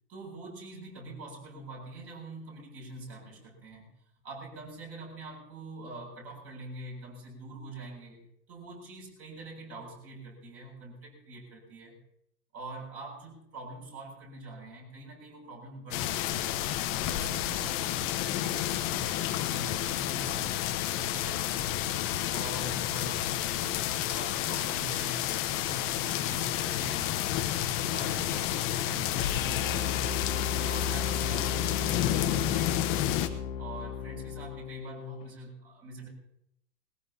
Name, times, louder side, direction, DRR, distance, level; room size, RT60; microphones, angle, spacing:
voice 1, 0.1-3.9 4.2-12.0 12.5-16.5 17.0-20.7 21.0-21.9 22.3-27.3 27.7-30.1 30.6-33.2 33.6-36.1, right 2 dB, 30° right, 0 dB, 7.5 m, -45 dB
sound 1, 15.9-33.3, left 12 dB, 25° left, 1.1 m, -30 dB
sound 2, 29.2-35.3, left 7 dB, 55° left, 2.0 m, -34 dB
21.0 x 20.5 x 2.9 m, 0.75 s
hypercardioid pair, 135°, 47 cm